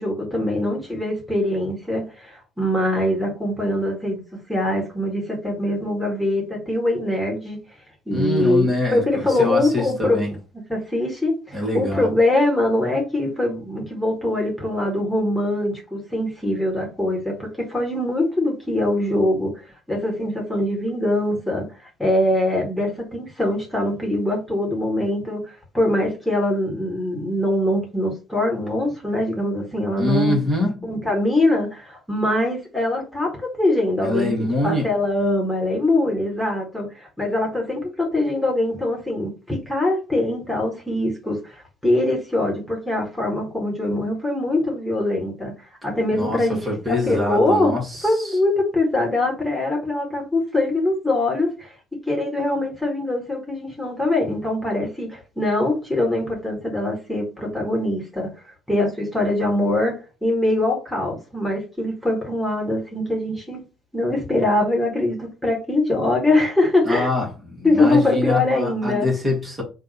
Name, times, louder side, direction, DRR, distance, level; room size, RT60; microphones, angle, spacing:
voice 1, 0.0-4.2 4.5-7.6 8.1-10.3 10.7-19.5 19.9-21.7 22.0-25.4 25.7-30.4 30.8-33.3 33.6-45.5 45.8-47.7 48.0-51.7 52.1-58.3 58.7-59.9 60.2-63.6 63.9-67.1 67.6-69.1, left 1 dB, 5° left, 1.8 m, -23 dB
voice 2, 8.1-10.3 11.5-12.1 30.0-30.9 34.0-34.9 46.1-48.4 66.8-69.6, left 2 dB, 25° right, 1.9 m, -24 dB
3.4 x 2.6 x 4.1 m
figure-of-eight pair, 50°, 0 cm